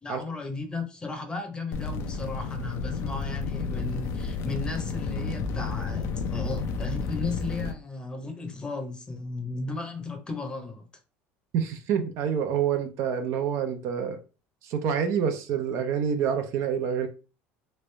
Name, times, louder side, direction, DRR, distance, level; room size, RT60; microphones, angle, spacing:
voice 1, 0.0-10.9, left 3 dB, 15° left, 0.8 m, -35 dB
sound 1, 1.7-7.7, left 4 dB, 60° left, 0.5 m, -31 dB
voice 2, 11.5-14.2 14.7-17.1, right 7 dB, 60° right, 0.7 m, -27 dB
3.2 x 2.6 x 3.2 m
supercardioid pair, 115°, 5 cm